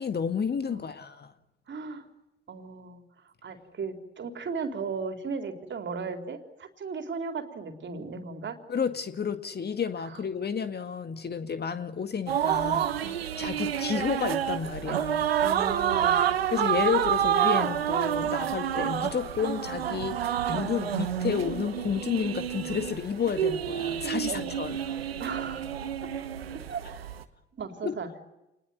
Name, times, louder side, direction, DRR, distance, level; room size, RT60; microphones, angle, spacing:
voice 1, 0.0-1.3 8.7-12.9 13.4-15.3 16.5-24.8 27.8-28.0, left 6 dB, 35° left, 9 dB, 2.0 m, -31 dB
voice 2, 1.7-2.0 2.5-3.0 3.4-8.6 10.0-10.2 13.0-13.2 15.4-16.2 24.0-24.6 25.2-25.7 26.0-26.1 26.5-26.8 27.5-28.1, right 5 dB, 40° right, 6 dB, 4.0 m, -36 dB
sound 1, 12.3-27.2, right 9 dB, 85° right, 1.3 m, -28 dB
29.0 x 21.0 x 9.7 m, 0.94 s
figure-of-eight pair, 55°, 29 cm